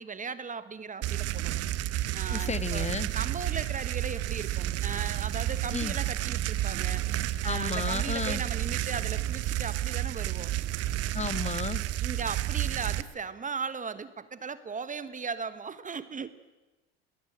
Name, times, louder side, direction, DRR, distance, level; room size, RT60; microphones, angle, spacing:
voice 1, 0.0-1.5 2.1-7.0 7.4-10.5 12.0-16.3, right 5 dB, 25° right, 14 dB, 1.3 m, -37 dB
sound 1, 1.0-13.0, right 14 dB, 50° right, 1.0 m, -31 dB
voice 2, 2.3-3.1 5.7-6.0 7.4-8.4 11.1-11.8, left 5 dB, 20° left, 14 dB, 1.3 m, -33 dB
22.0 x 18.0 x 7.8 m, 1.1 s
hypercardioid pair, 85°, 31 cm